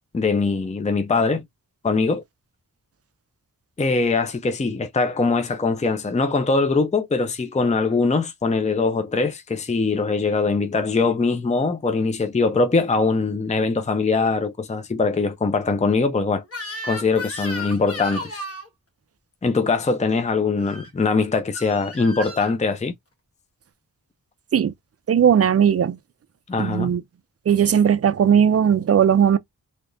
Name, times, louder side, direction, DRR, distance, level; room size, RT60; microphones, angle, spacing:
voice 1, 0.1-1.4 1.8-2.2 3.8-16.4 16.8-18.4 19.4-22.9 26.5-26.9, left 4 dB, 20° left, 0.5 m, -22 dB
Crying sobbing / Screech, 16.5-18.7 20.6-20.9 21.5-22.5, equal, 40° left, 1.2 m, -34 dB
voice 2, 25.1-26.0 26.6-27.0 27.5-29.4, right 8 dB, 45° right, 0.4 m, -17 dB
3.4 x 2.8 x 2.5 m
wide cardioid pair, 90°, 35 cm